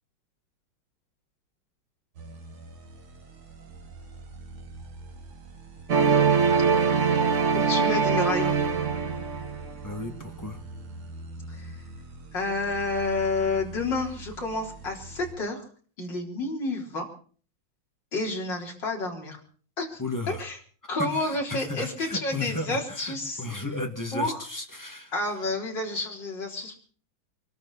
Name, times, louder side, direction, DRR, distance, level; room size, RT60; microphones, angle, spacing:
sound 1, 2.1-15.3, right 2 dB, 75° right, 2.9 m, -43 dB
sound 2, 5.9-9.8, right 5 dB, 40° right, 1.6 m, -23 dB
voice 1, 7.5-8.7 11.5-11.8 12.3-15.6 16.0-17.1 18.1-19.4 19.8-20.6 20.9-23.5 24.1-24.4 25.1-26.8, left 2 dB, 60° left, 0 dB, 4.7 m, -30 dB
voice 2, 9.8-10.6 20.0-20.5 21.0-25.1, left 2 dB, 10° left, 4 dB, 2.0 m, -34 dB
25.5 x 13.0 x 4.2 m, 0.42 s
omnidirectional pair, 2.3 m